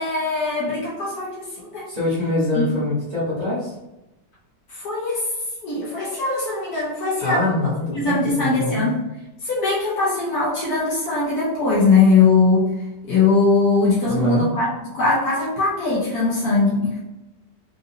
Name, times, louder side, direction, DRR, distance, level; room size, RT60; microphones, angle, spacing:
voice 1, 0.0-1.9 2.5-2.8 4.7-5.2 5.6-7.5 7.9-8.9 9.4-12.7 13.0-14.7 14.9-17.0, left 3 dB, 65° left, -6 dB, 1.4 m, -20 dB
voice 2, 1.9-3.7 7.2-8.8 14.1-14.5, left 2 dB, 25° right, -8 dB, 1.1 m, -24 dB
3.9 x 2.6 x 2.6 m, 0.97 s
omnidirectional pair, 1.9 m